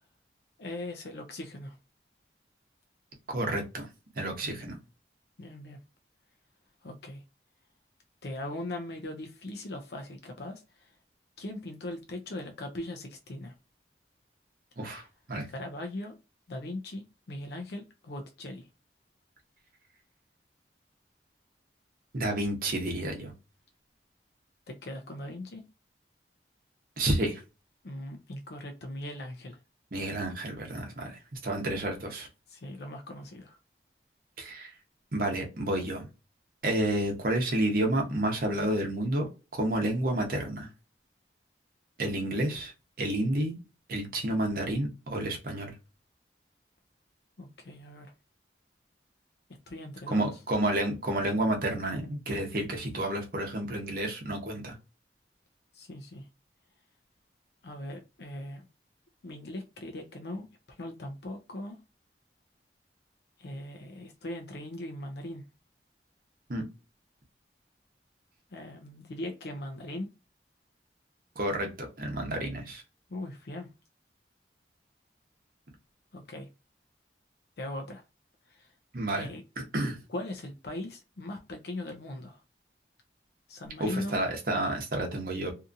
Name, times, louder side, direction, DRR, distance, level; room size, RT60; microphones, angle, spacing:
voice 1, 0.6-1.8 4.4-4.5 5.4-5.8 6.8-7.2 8.2-10.9 11.4-13.5 15.5-16.1 16.5-18.7 24.7-25.6 27.8-29.6 32.5-33.6 47.4-48.1 49.7-50.4 55.7-56.3 57.6-58.6 59.2-60.5 60.8-61.8 63.4-65.4 68.5-70.1 73.1-73.7 76.1-76.5 77.6-78.0 78.5-78.7 79.2-79.4 80.1-82.4 83.5-84.2, left 1 dB, 65° left, 4 dB, 0.5 m, -39 dB
voice 2, 3.3-3.9 4.1-4.8 14.8-15.5 22.1-23.3 27.0-27.4 29.9-32.3 34.4-34.7 35.1-36.1 36.6-39.3 39.5-40.7 42.0-42.7 43.0-43.6 43.9-45.7 50.1-54.8 66.5-66.6 71.4-72.8 78.9-79.3 79.6-80.0 83.8-85.5, right 1 dB, 50° right, 3 dB, 0.8 m, -30 dB
2.7 x 2.4 x 2.5 m, 0.29 s
head